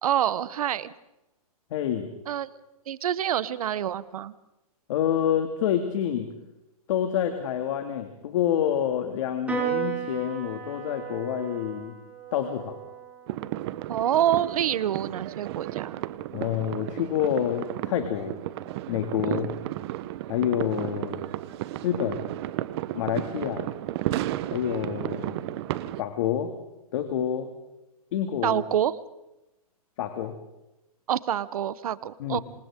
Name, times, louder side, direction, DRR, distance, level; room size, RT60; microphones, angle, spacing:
voice 1, 0.0-0.9 2.3-2.5 2.9-4.3 13.9-16.0 19.2-19.5 28.4-28.9 31.1-32.4, right 10 dB, 70° right, 17 dB, 1.1 m, -27 dB
voice 2, 1.7-2.1 4.9-6.3 6.9-11.9 12.3-12.8 16.3-18.4 18.9-19.5 20.3-21.3 21.8-22.3 22.9-23.7 24.5-25.5 26.0-26.5 26.9-27.5 28.1-28.6 30.0-30.3 32.2-32.4, left 10 dB, 55° left, 6 dB, 2.4 m, -27 dB
Piano, 9.5-16.2, right 6 dB, 5° right, 6.8 m, -36 dB
sound 1, 13.3-26.0, right 15 dB, 45° right, 1.1 m, -33 dB
27.0 x 27.0 x 3.8 m, 0.93 s
hypercardioid pair, 140°, 19 cm